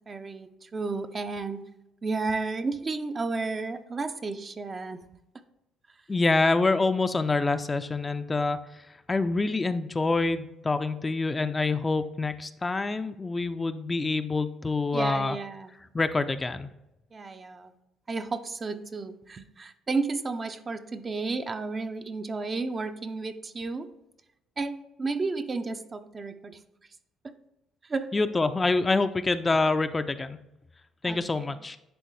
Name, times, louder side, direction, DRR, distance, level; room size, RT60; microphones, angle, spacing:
voice 1, 0.1-1.6 2.0-5.0 14.9-15.7 17.1-17.7 18.1-23.9 24.6-26.6 27.2-27.3 27.8-28.1 31.0-31.5, right 3 dB, 35° right, 9 dB, 0.5 m, -32 dB
voice 2, 6.1-8.6 9.1-15.4 15.9-16.7 28.1-30.4 31.0-31.8, left 3 dB, 25° left, 10 dB, 0.4 m, -26 dB
10.5 x 3.7 x 3.2 m, 0.90 s
supercardioid pair, 60°, 0 cm